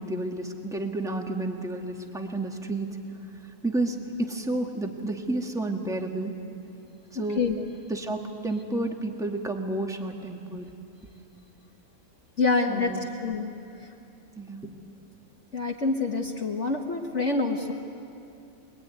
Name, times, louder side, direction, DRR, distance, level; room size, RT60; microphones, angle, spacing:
voice 1, 0.0-3.0 3.6-6.4 7.1-7.4 7.9-10.7 12.7-13.1 14.4-14.7, right 2 dB, ahead, 2 dB, 1.6 m, -31 dB
voice 2, 12.4-13.5 15.5-17.7, left 3 dB, 50° left, 1 dB, 1.7 m, -26 dB
25.0 x 22.5 x 9.5 m, 2.7 s
omnidirectional pair, 1.6 m